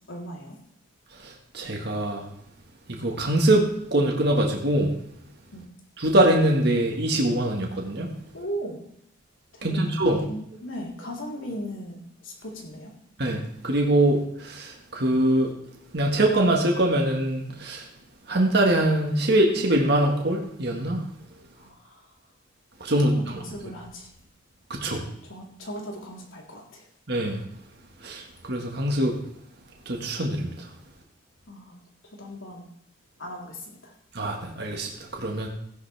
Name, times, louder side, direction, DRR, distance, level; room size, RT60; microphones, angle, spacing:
voice 1, 0.1-0.6 5.5-5.6 8.3-8.8 9.5-10.0 10.3-12.9 21.6-22.0 22.9-24.1 24.8-26.8 31.5-31.8 32.0-32.6 33.2-33.9, equal, 80° left, -2 dB, 3.6 m, -38 dB
voice 2, 1.2-2.2 2.9-4.9 6.0-8.1 9.6-10.2 13.2-15.5 15.9-17.8 18.3-21.0 22.8-23.1 24.7-25.0 27.1-27.4 28.0-28.2 28.5-29.2 29.9-30.5 34.2-35.5, right 1 dB, 55° right, 0 dB, 1.7 m, -23 dB
16.0 x 10.5 x 3.4 m, 0.73 s
head